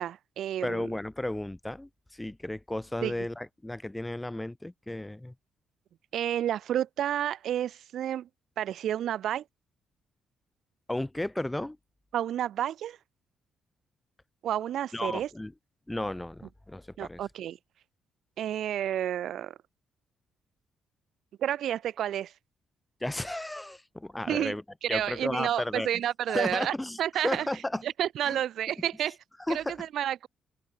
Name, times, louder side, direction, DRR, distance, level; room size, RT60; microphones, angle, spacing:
voice 1, 0.0-0.9 3.0-3.3 6.1-8.3 8.6-9.4 12.1-13.0 14.4-15.3 17.0-17.6 18.4-19.6 21.4-22.3 24.3-24.5 24.8-27.5 27.8-29.2 29.5-30.3, right 11 dB, 70° right, 0.9 m, -30 dB
voice 2, 0.6-5.3 10.9-11.8 14.9-15.5 15.9-17.2 23.0-24.6 24.9-25.9 26.3-27.0 27.2-27.8 28.3-28.4 29.5-29.8, left 1 dB, 10° left, 1.7 m, -33 dB
cardioid pair, 90°, 0 cm